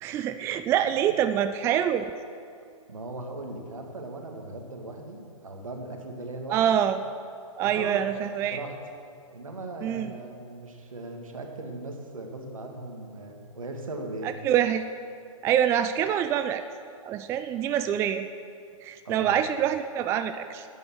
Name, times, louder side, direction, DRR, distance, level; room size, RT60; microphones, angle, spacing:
voice 1, 0.0-2.1 6.5-7.0 7.6-8.6 9.8-10.1 14.2-14.8 15.4-16.6 17.0-18.3 18.8-20.7, right 10 dB, 15° right, 10 dB, 0.3 m, -25 dB
voice 2, 2.9-6.8 7.6-8.1 8.4-8.8 9.3-14.3 19.0-19.4, right 2 dB, 75° right, 3 dB, 2.1 m, -38 dB
12.5 x 9.6 x 6.3 m, 2.3 s
figure-of-eight pair, 115°, 18 cm